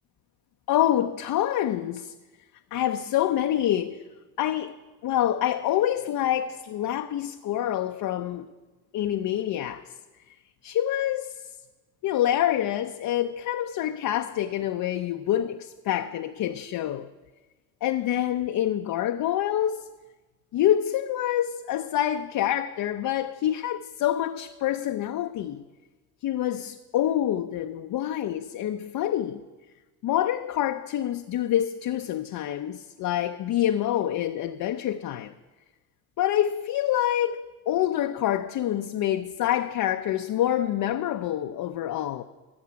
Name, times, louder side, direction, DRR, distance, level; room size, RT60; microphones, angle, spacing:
voice 1, 0.7-2.1 2.7-4.0 4.4-4.7 5.0-8.5 8.9-9.8 10.6-11.4 12.0-17.1 17.8-19.9 20.5-25.6 26.2-29.4 30.0-35.3 36.2-42.2, left 11 dB, 55° left, 0.6 m, -26 dB
14.5 x 7.1 x 5.8 m
supercardioid pair, 75°, 40 cm